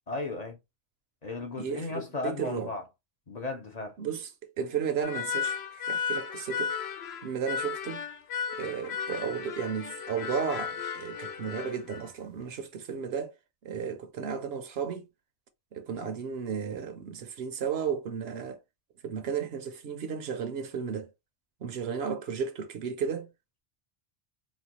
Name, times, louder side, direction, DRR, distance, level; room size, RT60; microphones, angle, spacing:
voice 1, 0.1-0.6 1.2-2.8 3.3-4.0, left 3 dB, 45° left, 0.7 m, -35 dB
voice 2, 1.6-2.7 4.0-4.3 4.6-6.7 7.2-8.0 8.6-13.3 13.6-15.0 15.7-18.6 19.0-21.1 21.6-23.3, right 7 dB, 70° right, 0.9 m, -34 dB
sound 1, 5.0-12.1, left 7 dB, 75° left, 0.9 m, -35 dB
4.2 x 2.3 x 2.9 m
omnidirectional pair, 1.1 m